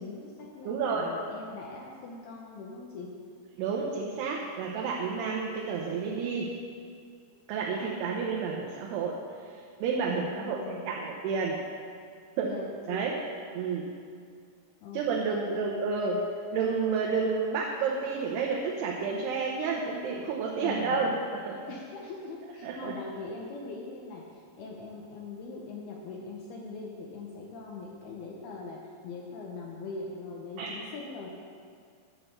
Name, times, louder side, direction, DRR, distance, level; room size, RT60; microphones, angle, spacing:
voice 1, 0.0-3.1 8.3-8.5 10.1-10.9 12.4-13.1 14.8-15.6 20.6-21.1 21.7-31.3, left 3 dB, 75° left, -1 dB, 2.5 m, -41 dB
voice 2, 0.7-1.1 3.6-6.5 7.5-9.2 9.8-11.6 12.4-12.5 12.9-13.1 13.5-13.9 14.9-16.2 16.5-21.6 22.6-23.0 30.6-30.7, right 5 dB, 75° right, -2 dB, 2.7 m, -30 dB
10.0 x 7.5 x 6.6 m, 2.2 s
omnidirectional pair, 5.3 m